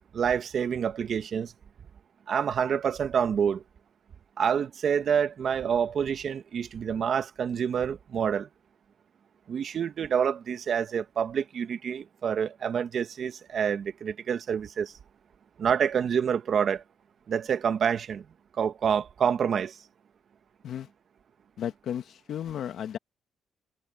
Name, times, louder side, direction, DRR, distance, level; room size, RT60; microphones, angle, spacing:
voice 1, 0.1-1.5 2.3-3.6 4.4-8.5 9.5-15.0 15.6-16.8 17.3-18.2 18.5-19.8, right 7 dB, 55° right, 1.6 m, -27 dB
voice 2, 21.6-23.0, left 9 dB, 70° left, 1.6 m, -34 dB
cardioid pair, 90°, 0 cm